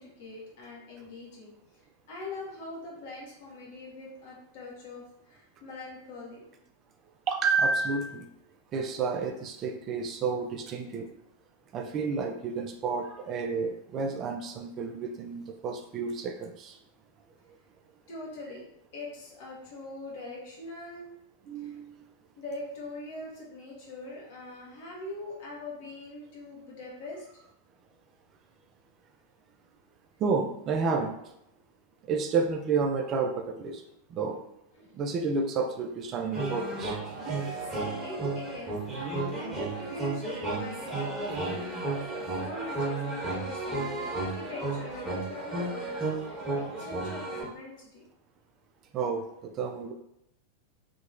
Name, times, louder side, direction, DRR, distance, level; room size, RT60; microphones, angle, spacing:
voice 1, 0.0-1.5 2.1-6.4 18.1-18.7 18.9-21.1 21.6-21.7 22.4-27.3 34.7-34.9 37.5-48.0, left 2 dB, 50° left, -3 dB, 1.1 m, -43 dB
voice 2, 7.3-8.3 8.7-11.1 11.7-16.8 21.5-21.9 30.2-31.1 32.1-33.8 34.1-34.4 34.9-37.0 48.9-49.9, right 4 dB, 30° right, 5 dB, 0.4 m, -30 dB
sound 1, 36.3-47.5, right 2 dB, 15° right, 1.2 m, -33 dB
2.9 x 2.8 x 2.5 m, 0.79 s
figure-of-eight pair, 90°, 0 cm